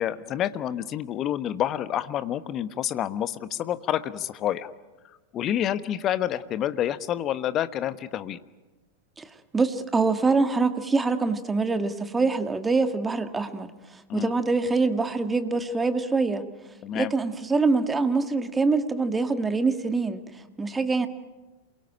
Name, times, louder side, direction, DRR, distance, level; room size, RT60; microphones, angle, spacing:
voice 1, 0.0-4.7 5.3-8.4 14.1-14.3 16.8-17.1, left 11 dB, 30° left, 13 dB, 1.2 m, -28 dB
voice 2, 9.5-13.7 14.1-16.4 16.9-20.2 20.6-21.1, right 3 dB, 15° right, 9 dB, 1.8 m, -24 dB
28.0 x 22.5 x 8.9 m, 1.2 s
figure-of-eight pair, 90°, 0 cm